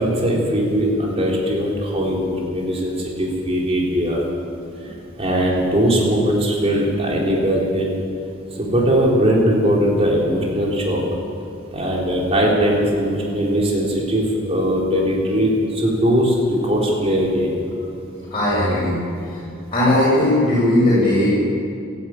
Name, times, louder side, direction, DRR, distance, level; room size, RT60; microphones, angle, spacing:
voice 1, 0.0-4.2 5.2-8.0 8.6-11.0 11.7-17.5, equal, 30° right, -3 dB, 3.9 m, -20 dB
voice 2, 18.3-19.4 19.7-21.3, left 1 dB, 25° left, -10 dB, 7.0 m, -18 dB
28.0 x 11.0 x 9.1 m, 2.6 s
head